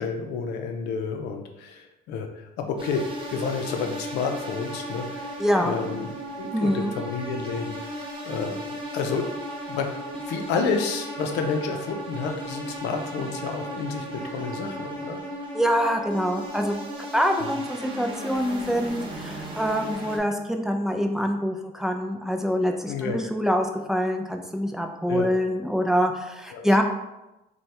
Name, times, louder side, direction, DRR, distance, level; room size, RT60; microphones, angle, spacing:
voice 1, 0.0-2.3 2.6-3.0 3.3-6.1 6.4-8.0 8.2-8.6 8.9-9.2 9.7-9.9 10.3-15.2 17.4-17.6 22.9-23.2 25.1-25.3 26.5-26.8, left 5 dB, 85° left, 4 dB, 0.6 m, -30 dB
sound 1, 2.8-20.2, right 1 dB, 30° right, 1.0 m, -36 dB
voice 2, 5.4-5.7 6.5-6.9 15.5-16.7 17.1-26.8, equal, 5° right, 3 dB, 0.3 m, -25 dB
3.2 x 2.3 x 4.3 m, 0.97 s
cardioid pair, 110°, 17 cm